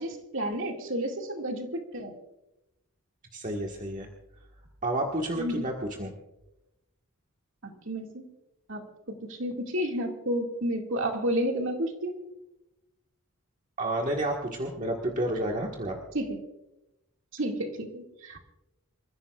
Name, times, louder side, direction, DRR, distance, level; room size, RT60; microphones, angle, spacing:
voice 1, 0.0-2.1 5.3-5.7 7.9-8.3 8.7-12.2 16.1-16.4 17.3-18.4, equal, 60° right, 2 dB, 2.3 m, -31 dB
voice 2, 3.3-4.1 4.8-5.7 6.0-6.1 13.8-16.0, right 1 dB, 35° right, 0 dB, 1.6 m, -30 dB
27.0 x 15.5 x 2.5 m, 0.95 s
head